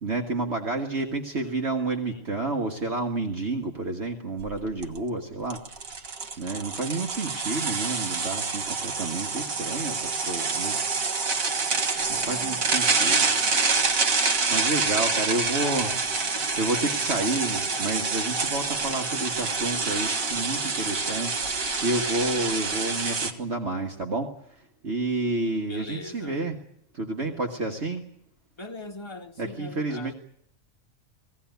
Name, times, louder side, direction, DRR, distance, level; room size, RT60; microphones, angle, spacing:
voice 1, 0.0-5.6 6.4-10.8 12.1-13.3 14.5-15.9 16.6-26.6 26.9-28.0 29.4-30.1, right 2 dB, 55° right, 1.9 m, -30 dB
voice 2, 1.9-2.2 12.1-12.6 12.9-13.7 15.3-16.0 17.2-17.4 25.7-26.4 28.6-30.1, left 2 dB, 20° left, 1.9 m, -41 dB
sound 1, 4.4-4.5 4.8-5.0 5.5-23.3, right 4 dB, 80° right, 2.1 m, -27 dB
20.0 x 16.5 x 9.3 m
omnidirectional pair, 1.4 m